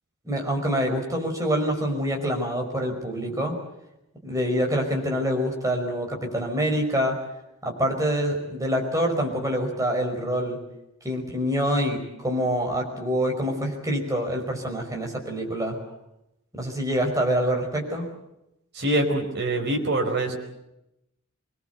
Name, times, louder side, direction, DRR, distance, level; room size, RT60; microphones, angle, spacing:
voice 1, 0.2-3.6 4.2-7.2 7.6-10.6 11.0-15.8 16.5-18.1, equal, 15° right, 1 dB, 5.3 m, -26 dB
voice 2, 18.7-20.4, right 1 dB, 50° right, 3 dB, 4.8 m, -24 dB
24.5 x 21.0 x 8.2 m, 0.87 s
head